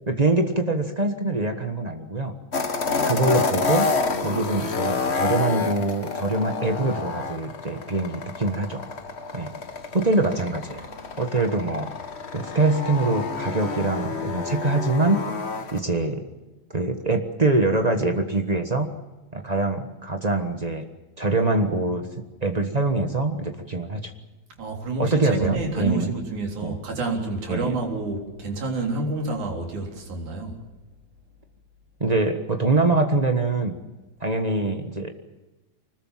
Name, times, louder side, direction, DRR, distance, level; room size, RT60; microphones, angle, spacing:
voice 1, 0.1-2.3 3.0-3.9 4.2-8.8 9.3-9.5 9.9-10.8 11.2-11.9 12.3-15.2 15.7-16.2 16.7-18.9 19.3-20.8 21.2-22.0 22.4-24.1 25.0-26.1 26.6-26.8 27.5-27.7 32.0-33.8 34.2-35.1, right 2 dB, 65° right, 5 dB, 0.4 m, -24 dB
sound 1, 2.5-15.8, left 4 dB, 45° left, 0.9 m, -29 dB
voice 2, 24.6-30.6, right 3 dB, 90° right, 1 dB, 5.0 m, -29 dB
25.5 x 20.5 x 7.4 m, 1.1 s
omnidirectional pair, 3.3 m